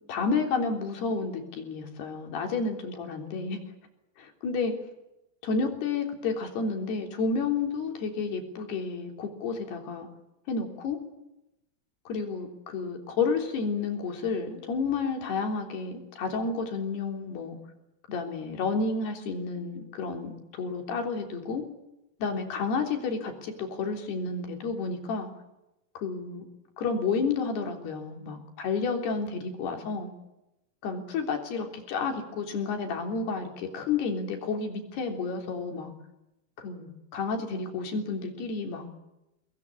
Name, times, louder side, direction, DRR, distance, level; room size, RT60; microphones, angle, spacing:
voice 1, 0.1-3.6 4.2-4.7 5.4-10.1 10.5-11.0 12.1-17.6 18.1-21.6 22.2-25.3 26.0-26.5 26.8-30.1 30.8-35.9 36.6-38.9, left 4 dB, 85° left, 3 dB, 5.5 m, -31 dB
24.0 x 20.0 x 9.7 m, 0.92 s
omnidirectional pair, 4.5 m